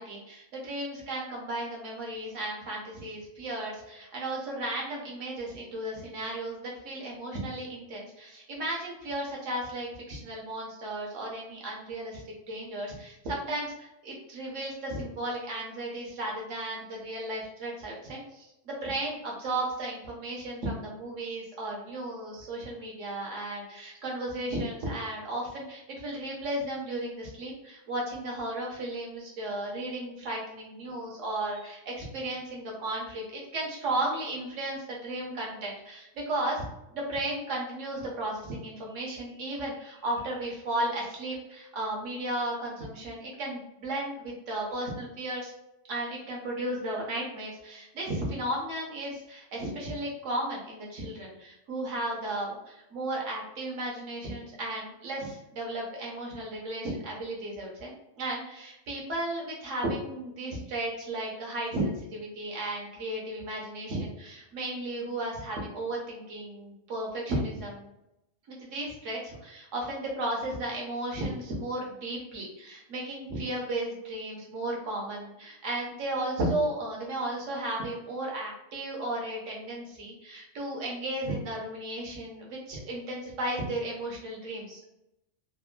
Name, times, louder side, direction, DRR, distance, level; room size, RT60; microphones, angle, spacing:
voice 1, 0.0-36.6 36.9-45.5 45.9-67.9 68.5-84.9, right 1 dB, 75° right, -2 dB, 1.2 m, -34 dB
3.4 x 2.1 x 2.2 m, 0.87 s
omnidirectional pair, 1.3 m